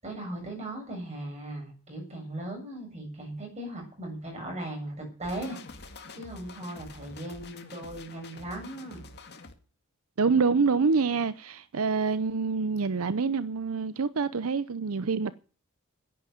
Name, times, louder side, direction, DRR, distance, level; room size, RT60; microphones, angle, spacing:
voice 1, 0.0-5.6 6.1-9.1, right 1 dB, 30° right, 7.3 m, -38 dB
sound 1, 5.2-9.5, left 3 dB, 50° left, 2.0 m, -47 dB
voice 2, 10.2-15.3, right 5 dB, 80° right, 0.6 m, -26 dB
10.5 x 10.0 x 9.3 m
head